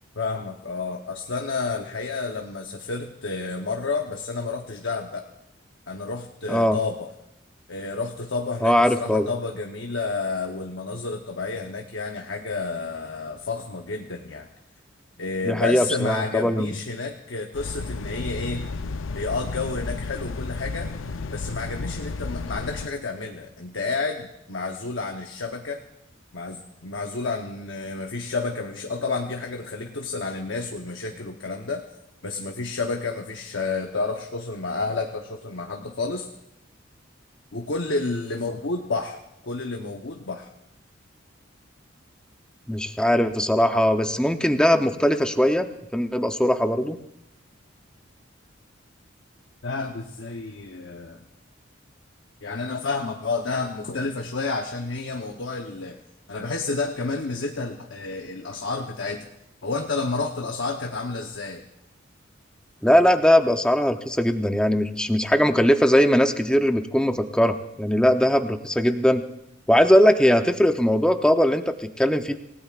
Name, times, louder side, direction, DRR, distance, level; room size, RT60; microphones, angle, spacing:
voice 1, 0.1-5.2 5.9-7.1 7.7-14.5 15.2-18.7 19.1-20.9 21.3-25.8 26.3-31.8 32.2-36.3 37.5-39.2 39.4-40.5 49.6-51.2 52.4-56.0 56.3-59.2 59.6-61.6, left 3 dB, 70° left, 3 dB, 0.9 m, -30 dB
voice 2, 8.6-9.3 15.4-16.8 42.7-47.0 62.8-69.2 69.7-72.4, equal, 5° left, 6 dB, 0.7 m, -20 dB
sound 1, 17.5-22.9, left 3 dB, 90° left, 0.6 m, -32 dB
27.5 x 17.0 x 2.4 m, 0.84 s
head